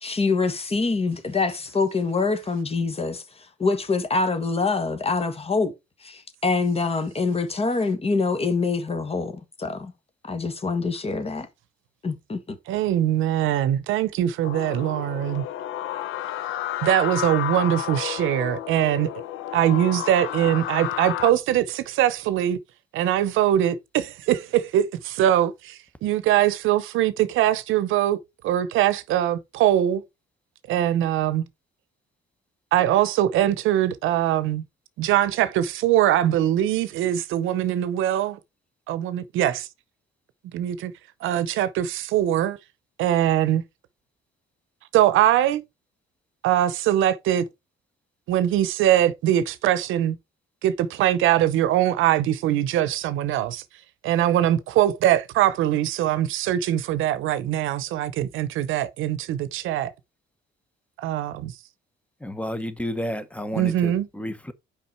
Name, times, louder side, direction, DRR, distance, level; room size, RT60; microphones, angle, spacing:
voice 1, 0.0-5.7 6.0-9.9 10.2-11.5 12.0-12.6, left 4 dB, 30° left, 1.4 m, -25 dB
voice 2, 12.7-15.4 16.8-19.1 19.5-22.6 22.9-30.0 30.7-31.4 32.7-34.6 35.0-38.4 38.9-39.7 40.5-40.9 41.2-42.6 43.0-43.6 44.9-45.6 46.4-47.4 48.3-50.1 50.6-53.6 54.0-59.9 61.0-61.5 63.6-64.1, right 12 dB, 90° right, 0.7 m, -22 dB
sound 1, 14.4-21.3, left 12 dB, 85° left, 0.6 m, -31 dB
voice 3, 62.2-64.5, equal, 5° left, 1.0 m, -31 dB
5.6 x 5.0 x 4.3 m
cardioid pair, 90°, 20 cm